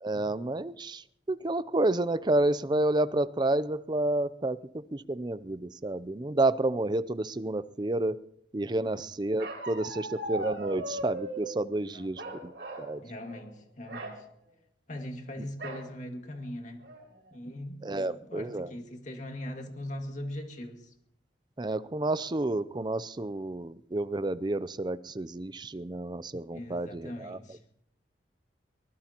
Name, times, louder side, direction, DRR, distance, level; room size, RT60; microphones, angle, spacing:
voice 1, 0.0-4.6 4.9-8.2 8.5-12.5 12.8-13.0 17.8-18.7 21.6-27.4, right 2 dB, 25° right, 15 dB, 0.5 m, -30 dB
Bark, 9.4-11.5 12.2-12.9 13.2-13.5 13.8-14.2 15.6-15.9 16.4-16.5 16.8-17.3, right 1 dB, 75° right, 4.8 m, -38 dB
voice 2, 11.8-12.1 13.0-14.3 14.9-16.8 17.3-20.9 26.5-27.6, left 1 dB, 45° left, 3 dB, 2.2 m, -41 dB
23.5 x 19.5 x 3.0 m, 0.70 s
head